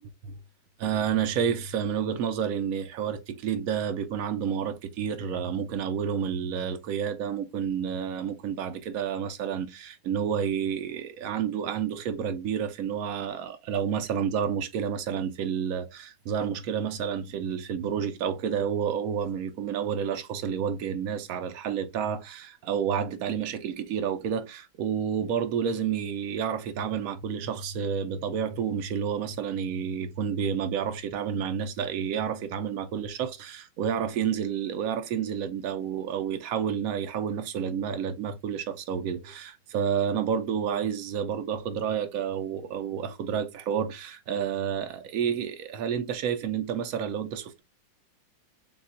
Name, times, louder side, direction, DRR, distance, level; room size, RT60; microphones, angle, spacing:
voice 1, 0.8-47.6, right 8 dB, 85° right, 0.7 m, -30 dB
7.0 x 2.4 x 2.5 m
omnidirectional pair, 2.2 m